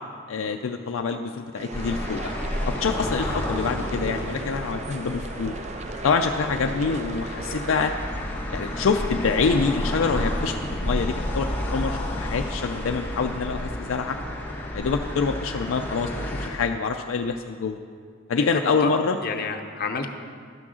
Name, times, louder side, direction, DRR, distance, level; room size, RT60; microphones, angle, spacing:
voice 1, 0.3-2.3 2.7-5.6 6.0-7.9 8.5-14.2 14.7-17.8 18.3-19.2, left 5 dB, 75° left, 5 dB, 0.4 m, -26 dB
sound 1, 1.5-8.0, right 3 dB, 35° right, 0.4 m, -37 dB
sound 2, 1.7-16.5, left 1 dB, 10° left, 1.3 m, -31 dB
voice 2, 18.3-18.9 19.2-20.1, left 4 dB, 50° left, 5 dB, 0.7 m, -30 dB
11.5 x 6.1 x 6.2 m, 2.1 s
head